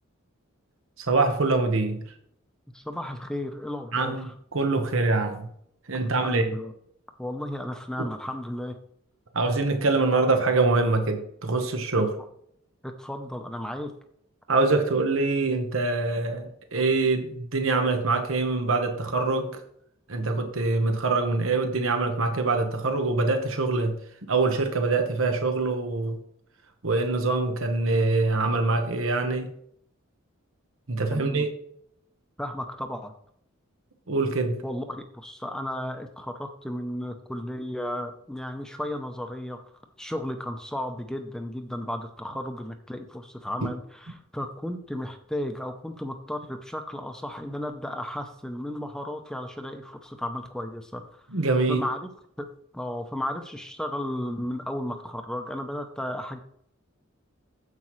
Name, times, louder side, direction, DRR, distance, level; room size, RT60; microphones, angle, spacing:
voice 1, 1.1-2.0 3.9-5.5 5.9-6.4 8.0-8.1 9.3-12.1 14.5-19.6 20.1-24.0 24.3-26.2 26.8-29.5 30.9-31.5 34.1-34.6 51.3-51.8, right 3 dB, 80° right, 5 dB, 1.1 m, -24 dB
voice 2, 2.7-4.3 6.0-6.7 7.2-8.8 12.8-13.9 31.1-31.5 32.4-33.1 34.6-39.7 40.0-51.2 51.7-52.1 52.4-52.5 52.7-56.4, left 1 dB, 5° left, 5 dB, 0.6 m, -34 dB
9.6 x 7.7 x 3.1 m, 0.68 s
head